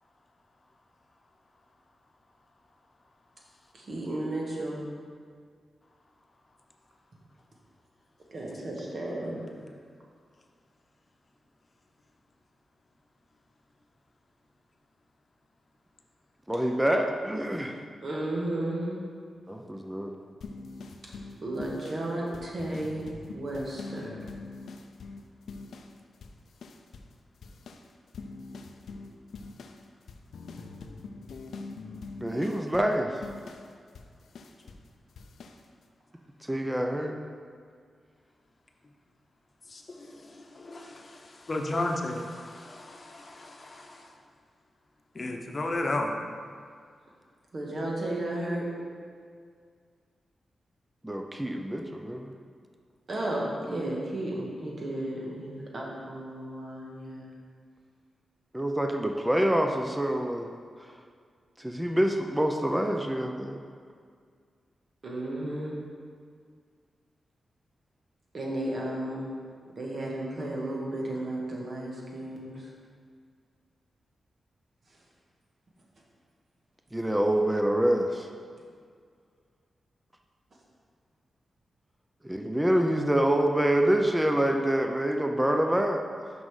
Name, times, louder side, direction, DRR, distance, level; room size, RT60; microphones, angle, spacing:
voice 1, 3.7-4.8 8.3-9.6 18.0-19.0 21.4-24.1 47.5-48.6 53.1-57.3 65.0-65.8 68.3-69.3 69.8-72.7, right 1 dB, 55° right, -3 dB, 1.6 m, -33 dB
voice 2, 16.5-17.8 19.5-20.1 32.2-33.2 36.4-37.2 51.0-52.3 58.5-60.5 60.8-60.9 61.6-63.6 76.9-78.3 82.2-86.3, right 1 dB, 10° right, 3 dB, 0.6 m, -26 dB
sound 1, 20.4-26.0 26.2-27.2 27.4-34.9 35.2-35.6, left 3 dB, 80° left, 0.4 m, -43 dB
voice 3, 39.7-44.1 45.1-46.1, left 2 dB, 45° left, 3 dB, 0.9 m, -34 dB
6.0 x 5.3 x 4.8 m, 2.1 s
cardioid pair, 55°, 0 cm